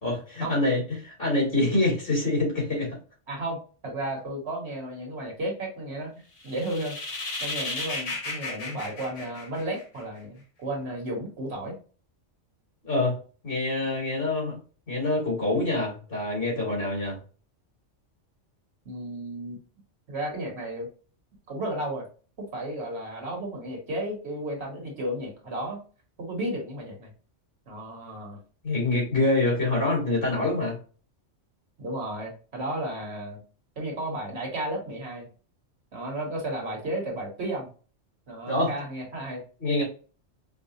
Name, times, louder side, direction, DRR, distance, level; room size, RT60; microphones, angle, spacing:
voice 1, 0.0-3.0 12.8-13.2 13.4-14.6 14.9-17.2 28.6-30.8 38.5-38.7 39.6-39.8, left 2 dB, 45° left, -3 dB, 2.3 m, -25 dB
voice 2, 3.3-3.6 3.8-6.1 6.4-7.0 7.4-11.8 18.8-19.6 20.1-20.9 21.5-22.1 22.4-25.8 26.2-27.1 27.7-28.4 31.8-33.4 33.8-35.3 35.9-37.7 38.3-39.4, right 1 dB, 60° right, 0 dB, 1.4 m, -33 dB
sound 1, 6.4-10.0, left 2 dB, 75° left, 1.5 m, -34 dB
4.7 x 2.1 x 2.7 m, 0.38 s
omnidirectional pair, 1.3 m